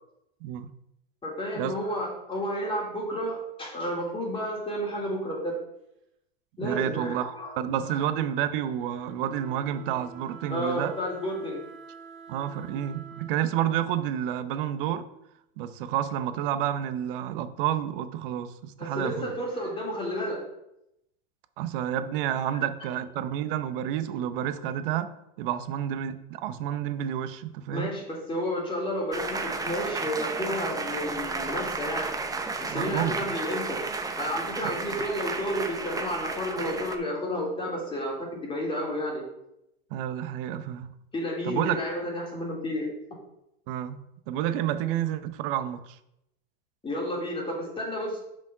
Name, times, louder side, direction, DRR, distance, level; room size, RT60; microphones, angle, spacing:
voice 1, 1.2-5.6 6.6-7.5 8.0-8.1 10.5-11.6 18.8-20.4 27.7-32.1 32.6-33.8 34.2-39.2 41.1-42.9 46.8-48.2, equal, 20° left, -3 dB, 3.2 m, -31 dB
Wind instrument woodwind instrument, 6.6-15.4, right 4 dB, 40° right, 1.3 m, -49 dB
voice 2, 6.6-10.9 12.3-15.0 15.6-19.3 21.6-25.1 25.4-27.9 32.7-33.1 34.6-34.7 39.9-40.9 41.4-41.7 43.7-44.0 44.3-46.0, right 10 dB, 65° right, 11 dB, 0.8 m, -30 dB
sound 1, 29.1-37.0, right 3 dB, 10° right, 0.7 m, -33 dB
6.0 x 5.0 x 5.6 m, 0.82 s
supercardioid pair, 110°, 29 cm